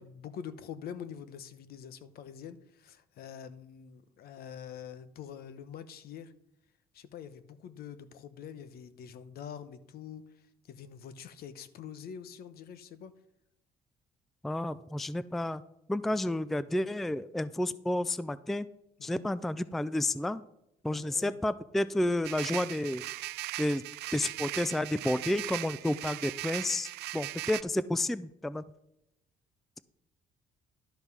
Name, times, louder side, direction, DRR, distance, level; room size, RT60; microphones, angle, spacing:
voice 1, 0.0-6.3 6.9-10.2 10.7-13.1 16.1-16.2 19.0-19.2 20.9-21.4, left 8 dB, 65° left, 14 dB, 1.0 m, -45 dB
voice 2, 14.4-15.6 15.9-18.7 19.0-20.4 20.8-23.0 23.6-23.8 24.1-28.6, left 1 dB, ahead, 17 dB, 0.3 m, -31 dB
sound 1, 22.2-27.6, right 18 dB, 80° right, 0.4 m, -39 dB
11.5 x 5.4 x 6.1 m, 0.82 s
cardioid pair, 110°, 17 cm